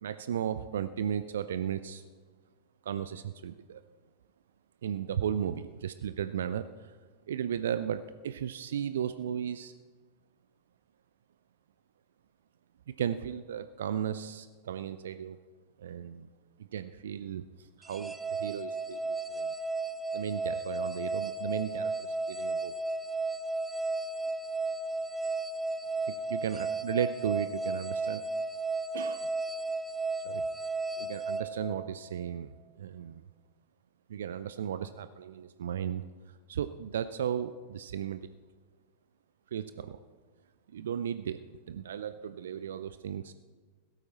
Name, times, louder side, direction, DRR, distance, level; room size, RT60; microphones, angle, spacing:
voice 1, 0.0-2.0 2.8-3.8 4.8-7.0 7.3-9.7 12.9-15.4 15.8-16.3 16.7-19.5 20.1-22.7 26.1-28.3 28.9-29.3 30.2-30.4 31.0-33.2 34.1-38.3 39.5-40.0 40.7-43.3, right 9 dB, 60° right, 13 dB, 0.4 m, -35 dB
sound 1, 17.8-32.2, right 2 dB, 10° right, 0.7 m, -34 dB
16.0 x 13.0 x 4.1 m, 1.4 s
figure-of-eight pair, 90°, 0 cm